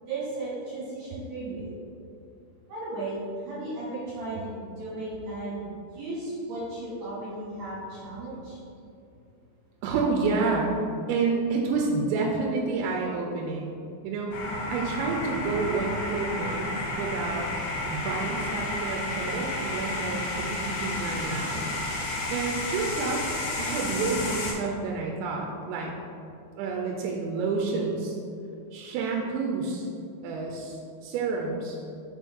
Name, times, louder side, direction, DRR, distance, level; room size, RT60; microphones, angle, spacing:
voice 1, 0.1-1.7 2.7-8.6, right 2 dB, 60° right, -11 dB, 2.7 m, -35 dB
voice 2, 9.8-10.7 11.1-17.5 17.9-21.7 22.1-23.2 23.6-25.9 26.6-28.2 28.7-29.9 30.2-31.8, right 4 dB, 85° right, -1 dB, 2.8 m, -29 dB
sound 1, 14.3-24.5, left 2 dB, 70° left, 1.7 m, -31 dB
6.0 x 4.5 x 3.5 m, 2.5 s
omnidirectional pair, 5.2 m